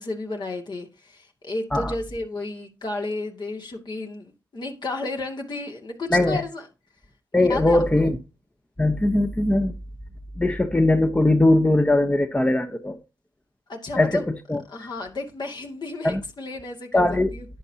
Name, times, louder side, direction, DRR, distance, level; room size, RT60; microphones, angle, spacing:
voice 1, 0.0-6.6 7.4-8.1 13.7-14.3 14.7-17.5, left 2 dB, 45° left, 2.4 m, -32 dB
voice 2, 7.3-8.2 8.8-9.8 10.4-13.0 13.9-14.2 14.5-14.6 16.0-16.2 16.9-17.4, left 2 dB, 15° left, 1.0 m, -20 dB
11.0 x 8.3 x 2.9 m
supercardioid pair, 45°, 10 cm